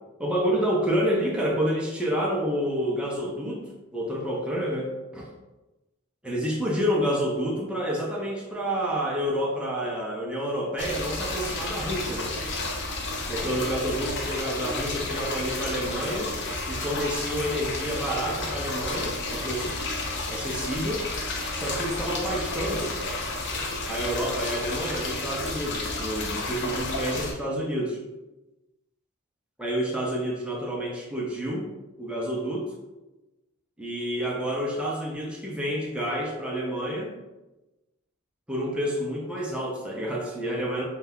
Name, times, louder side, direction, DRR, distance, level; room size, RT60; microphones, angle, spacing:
voice 1, 0.2-3.7 3.9-5.3 6.2-12.4 13.3-16.3 16.7-19.8 20.3-21.1 21.5-22.9 23.8-28.0 29.6-31.7 32.0-32.7 33.8-37.1 38.5-40.9, equal, 5° right, -3 dB, 0.4 m, -29 dB
sound 1, 10.8-27.3, left 2 dB, 55° left, 0.5 m, -31 dB
2.7 x 2.2 x 3.4 m, 1.0 s
head